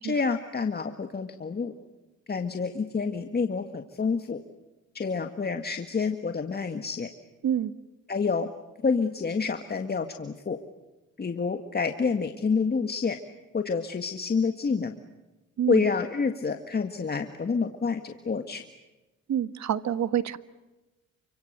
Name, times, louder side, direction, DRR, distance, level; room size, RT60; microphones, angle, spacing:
voice 1, 0.0-1.7 2.3-4.4 4.9-7.1 8.1-8.5 8.8-10.6 11.2-13.2 13.5-15.0 15.7-18.6, left 5 dB, 30° left, 7 dB, 1.8 m, -28 dB
voice 2, 19.3-20.4, right 10 dB, 65° right, 14 dB, 1.5 m, -27 dB
29.0 x 25.5 x 6.7 m, 1.1 s
cardioid pair, 90°, 30 cm